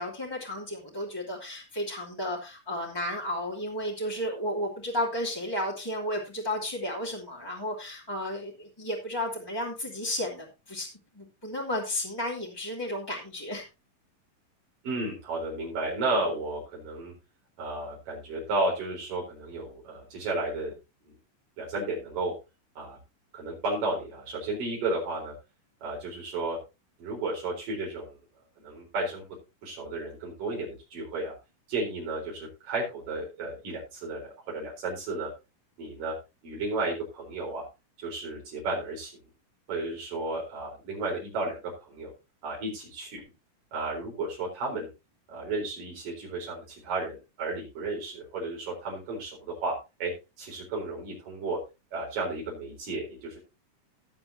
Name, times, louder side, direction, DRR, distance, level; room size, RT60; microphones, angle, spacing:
voice 1, 0.0-10.9 11.1-13.6, left 1 dB, 10° left, -4 dB, 2.4 m, -33 dB
voice 2, 14.8-17.1 17.6-20.7 21.6-22.3 22.8-23.0 23.3-25.3 25.8-26.6 27.0-28.2 28.6-29.2 29.6-31.4 31.7-35.3 35.8-36.1 36.4-37.7 38.0-39.1 39.7-41.6 41.9-42.1 42.4-43.2 43.7-44.9 45.3-49.8 50.0-51.6 51.9-53.4, right 2 dB, 80° right, -2 dB, 6.0 m, -33 dB
18.0 x 7.9 x 2.8 m, 0.27 s
omnidirectional pair, 3.8 m